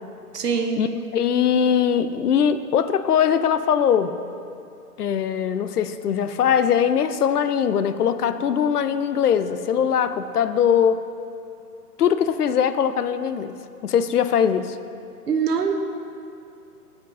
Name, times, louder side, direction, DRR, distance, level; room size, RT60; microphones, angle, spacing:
voice 1, 0.3-0.8 15.3-15.8, right 6 dB, 80° right, 4 dB, 1.2 m, -23 dB
voice 2, 1.1-4.1 5.0-11.0 12.0-13.5 13.8-14.8, left 8 dB, 70° left, 12 dB, 0.6 m, -21 dB
12.0 x 5.3 x 5.3 m, 2.5 s
hypercardioid pair, 165°, 47 cm